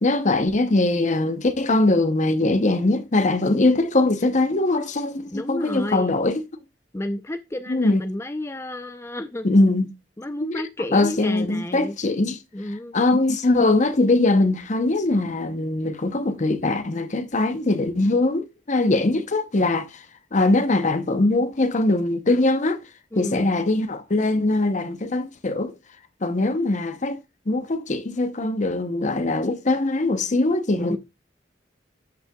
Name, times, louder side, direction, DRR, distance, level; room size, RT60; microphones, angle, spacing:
voice 1, 0.0-6.4 7.7-8.0 9.4-9.9 10.4-12.4 12.9-20.1 20.3-25.8 26.2-27.2 27.5-31.0, left 2 dB, 45° left, 0.8 m, -21 dB
voice 2, 5.3-6.1 6.9-9.5 10.2-12.0 12.5-13.0 23.1-23.5 30.9-31.0, left 1 dB, 15° left, 0.5 m, -31 dB
12.5 x 5.6 x 2.3 m
head